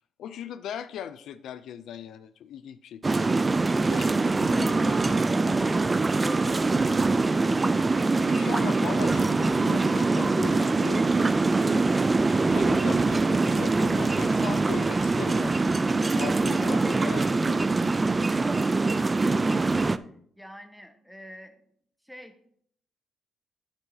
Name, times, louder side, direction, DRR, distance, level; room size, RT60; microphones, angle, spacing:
voice 1, 0.2-3.3 3.9-5.0 8.2-11.1 11.6-11.9 12.5-15.6 16.1-17.4, left 9 dB, 75° left, 12 dB, 0.4 m, -38 dB
sound 1, 3.0-20.0, right 3 dB, 25° right, 0.3 m, -23 dB
voice 2, 4.0-7.4 20.4-21.7 22.0-22.3, equal, ahead, 6 dB, 1.1 m, -45 dB
9.3 x 8.8 x 2.8 m, 0.64 s
cardioid pair, 90°, 0 cm